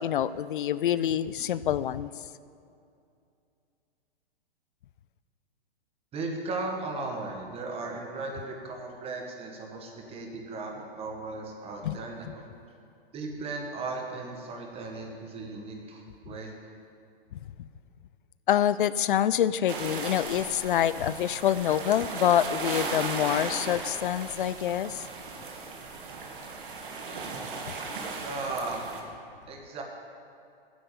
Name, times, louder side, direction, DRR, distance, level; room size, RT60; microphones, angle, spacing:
voice 1, 0.0-2.1 11.8-12.0 17.6-17.7 18.5-25.0, left 10 dB, 60° left, 16 dB, 0.4 m, -26 dB
voice 2, 6.1-12.5 13.1-16.5 28.2-28.9 29.5-29.8, right 3 dB, 20° right, 2 dB, 1.7 m, -36 dB
sound 1, 19.7-29.0, right 4 dB, 60° right, 1.7 m, -37 dB
9.6 x 7.7 x 8.7 m, 2.5 s
hypercardioid pair, 120°, 29 cm